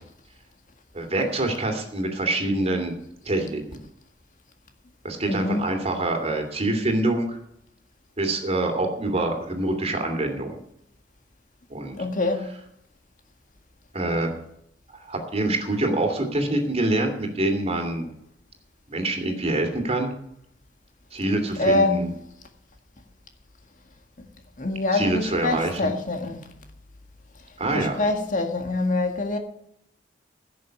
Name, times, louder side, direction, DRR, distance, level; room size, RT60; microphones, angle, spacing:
voice 1, 0.9-2.9 3.2-3.8 5.0-7.4 8.2-10.6 11.7-11.9 13.9-14.3 14.9-18.0 18.9-20.1 21.1-22.1 24.9-25.9 27.6-28.0, right 2 dB, 35° right, 2.8 m, -25 dB
voice 2, 5.3-5.6 12.0-12.5 21.6-22.1 24.6-26.5 27.7-29.4, left 2 dB, 45° left, 1.8 m, -24 dB
16.0 x 6.7 x 7.7 m
head